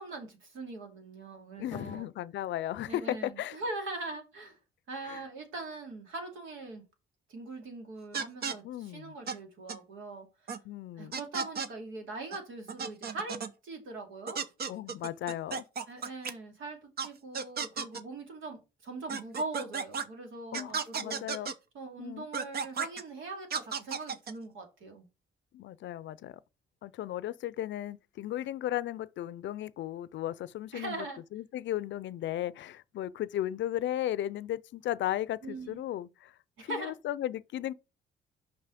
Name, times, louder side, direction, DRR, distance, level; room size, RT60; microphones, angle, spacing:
voice 1, 0.0-2.1 2.9-4.6 4.9-6.8 7.3-10.3 11.0-13.4 13.6-14.4 15.9-21.2 21.7-25.1 30.7-31.2 35.4-35.8 36.6-36.9, right 2 dB, 80° right, 2.6 m, -41 dB
voice 2, 1.6-3.6 5.0-5.2 8.6-9.1 10.6-11.2 14.7-15.6 20.5-21.5 22.0-22.2 25.5-26.4 26.8-31.1 31.3-36.3 36.6-37.7, left 12 dB, 70° left, 0.5 m, -35 dB
sound 1, 8.1-8.5 9.3-9.4 9.7-9.8 10.5-10.6 11.1-11.7 12.3-12.4 12.7-13.5 14.3-16.3 17.0-17.1 17.3-18.0 19.1-20.0 20.5-21.5 22.3-23.0 23.5-24.3, right 5 dB, 50° right, 0.8 m, -34 dB
5.6 x 5.5 x 5.1 m
cardioid pair, 90°, 20 cm